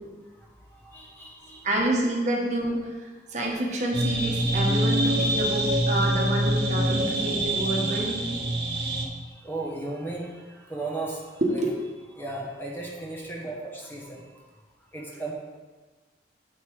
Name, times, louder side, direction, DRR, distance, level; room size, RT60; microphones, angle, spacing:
voice 1, 0.3-1.7 8.5-9.0 9.3-11.6 12.1-14.3 14.9-15.3, right 2 dB, 10° left, -3 dB, 1.2 m, -36 dB
voice 2, 1.6-8.3 11.4-11.8, right 1 dB, 45° right, -2 dB, 1.3 m, -28 dB
sound 1, 3.9-9.1, right 1 dB, 70° right, 1.0 m, -25 dB
8.1 x 5.4 x 4.7 m, 1.3 s
head